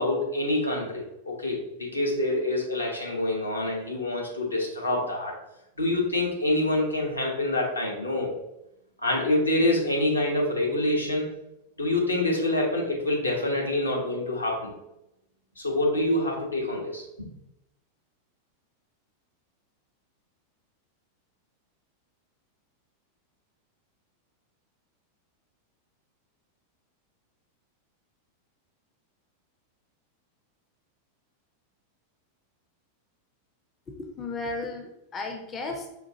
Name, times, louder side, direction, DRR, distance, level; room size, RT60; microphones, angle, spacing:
voice 1, 0.0-5.3 5.8-8.3 9.0-11.3 11.8-14.7 15.6-17.3, left 1 dB, 85° left, -2 dB, 0.9 m, -26 dB
voice 2, 33.9-35.9, left 3 dB, 25° left, 3 dB, 0.5 m, -34 dB
5.0 x 2.4 x 2.7 m, 0.88 s
figure-of-eight pair, 90°, 0 cm